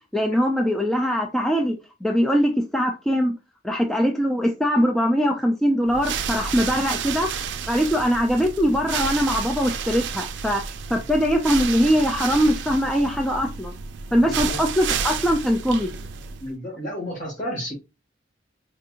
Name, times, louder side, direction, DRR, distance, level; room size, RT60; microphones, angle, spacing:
voice 1, 0.1-1.8 2.0-3.3 3.6-7.3 7.7-10.6 10.9-13.7 14.1-16.0, equal, ahead, 0.3 m, -21 dB
sound 1, 5.9-16.5, right 6 dB, 75° right, 0.4 m, -31 dB
voice 2, 14.2-14.7 16.4-17.7, equal, 45° left, 2.2 m, -32 dB
4.4 x 2.5 x 2.8 m
head